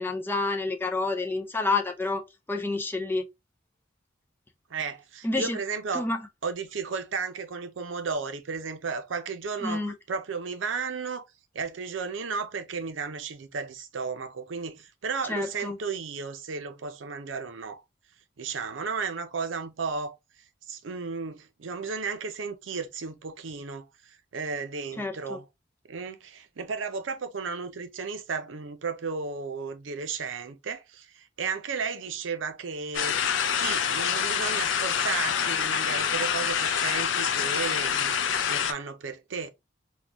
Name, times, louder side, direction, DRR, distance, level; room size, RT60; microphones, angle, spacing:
voice 1, 0.0-2.2 2.5-3.3 5.2-5.6 5.9-6.2 9.6-9.9 15.3-15.8 25.0-25.4, left 3 dB, 10° left, 0.4 m, -29 dB
voice 2, 4.7-6.1 6.4-11.2 11.5-17.8 18.4-20.2 20.7-23.9 24.3-25.4 25.9-33.2 33.6-38.1 38.5-39.5, right 5 dB, 80° right, 0.6 m, -34 dB
sound 1, 32.9-38.7, left 8 dB, 80° left, 0.5 m, -26 dB
3.8 x 2.2 x 2.8 m
head